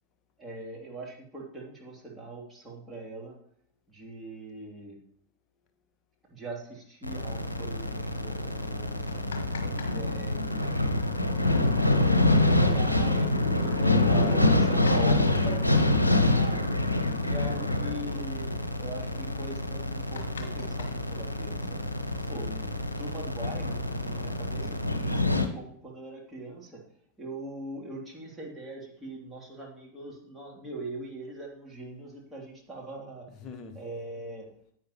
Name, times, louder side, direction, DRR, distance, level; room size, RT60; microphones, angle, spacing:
voice 1, 0.4-3.4 3.9-5.0 6.3-10.7 11.3-13.7 14.0-16.8 17.2-21.9 22.3-22.5 23.0-26.8 27.2-33.3 33.7-34.5, right 2 dB, 10° right, -3 dB, 2.8 m, -42 dB
sound 1, 7.0-25.5, left 1 dB, 85° left, 0.8 m, -26 dB
sound 2, 9.1-10.0 10.2-10.3 12.1-12.2 12.5-12.6 13.2-13.4 14.2-15.6 17.1-17.2 17.5-17.7 18.0-18.4 18.9-19.0 19.4-19.5 19.8-21.7 22.6-23.4, left 5 dB, 60° left, 1.3 m, -42 dB
voice 2, 13.6-15.4 22.2-22.8 33.3-33.8, left 6 dB, 30° left, 6 dB, 1.2 m, -42 dB
10.0 x 9.0 x 3.0 m, 0.64 s
figure-of-eight pair, 90°, 0 cm